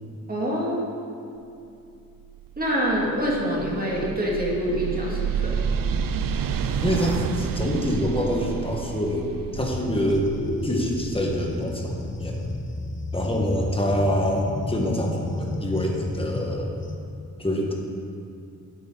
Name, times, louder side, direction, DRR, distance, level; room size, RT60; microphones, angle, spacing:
voice 1, 0.3-0.8 2.6-5.6, equal, 25° right, -4 dB, 2.4 m, -25 dB
sound 1, 2.1-12.9, right 7 dB, 70° right, 0.5 m, -30 dB
voice 2, 6.8-10.3 10.6-12.4 13.1-16.7 17.4-17.7, equal, 15° left, -1 dB, 1.5 m, -26 dB
sound 2, 9.5-17.0, left 2 dB, 35° left, 0.9 m, -32 dB
11.5 x 8.4 x 4.0 m, 2.6 s
wide cardioid pair, 105°, 35 cm